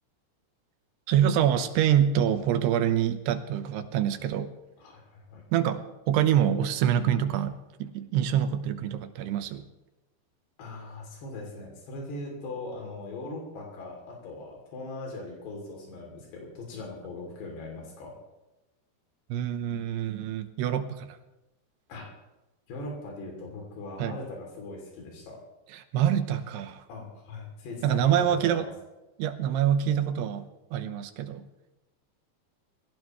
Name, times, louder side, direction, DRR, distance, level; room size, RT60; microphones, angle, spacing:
voice 1, 1.1-4.5 5.5-9.6 19.3-21.2 24.0-24.2 25.9-26.8 27.8-28.6 29.2-31.5, right 10 dB, 90° right, 9 dB, 3.0 m, -26 dB
voice 2, 4.8-5.4 10.6-18.1 21.9-22.1 22.7-25.4 26.9-28.7, left 2 dB, 90° left, -1 dB, 5.1 m, -40 dB
22.0 x 17.0 x 3.1 m, 1.0 s
omnidirectional pair, 4.7 m